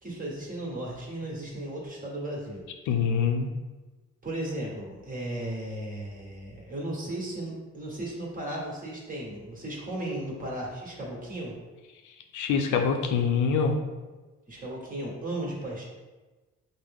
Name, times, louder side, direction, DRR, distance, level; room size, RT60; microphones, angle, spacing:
voice 1, 0.0-2.6 4.2-11.5 14.5-15.8, right 1 dB, 25° right, -3 dB, 1.4 m, -35 dB
voice 2, 2.9-3.5 12.3-13.8, left 6 dB, 80° left, 4 dB, 0.6 m, -25 dB
5.4 x 2.1 x 3.5 m, 1.2 s
cardioid pair, 90°, 30 cm